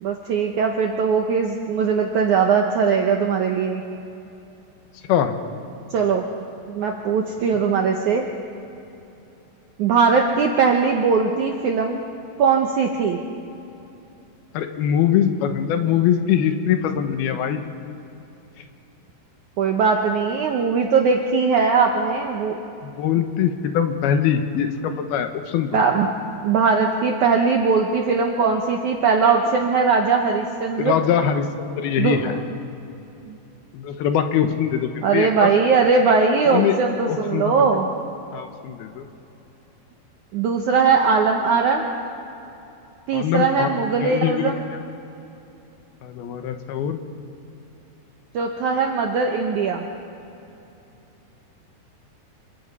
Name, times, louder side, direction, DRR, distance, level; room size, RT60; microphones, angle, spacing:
voice 1, 0.0-3.8 5.9-6.2 6.7-8.3 9.8-12.0 12.4-13.2 19.6-22.6 25.7-26.1 26.4-31.0 32.0-32.6 33.3-33.4 35.0-37.9 40.3-41.8 43.1-44.6 48.3-49.9, right 5 dB, 70° right, 2 dB, 1.9 m, -20 dB
voice 2, 14.5-17.6 22.8-25.8 30.8-32.4 33.7-35.5 36.4-36.8 37.1-37.7 38.3-39.0 43.1-44.8 46.0-47.0, left 9 dB, 75° left, 7 dB, 2.9 m, -22 dB
26.0 x 23.0 x 5.6 m, 2.9 s
omnidirectional pair, 4.8 m